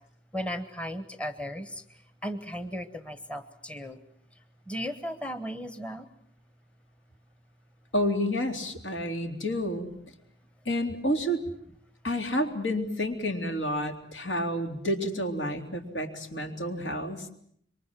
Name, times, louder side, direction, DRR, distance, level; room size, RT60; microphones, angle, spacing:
voice 1, 0.3-4.0 4.7-6.1, equal, 5° left, 10 dB, 1.1 m, -36 dB
voice 2, 7.9-9.9 10.7-11.4 12.0-17.3, equal, 75° left, 5 dB, 3.7 m, -30 dB
27.0 x 23.5 x 7.5 m, 0.66 s
head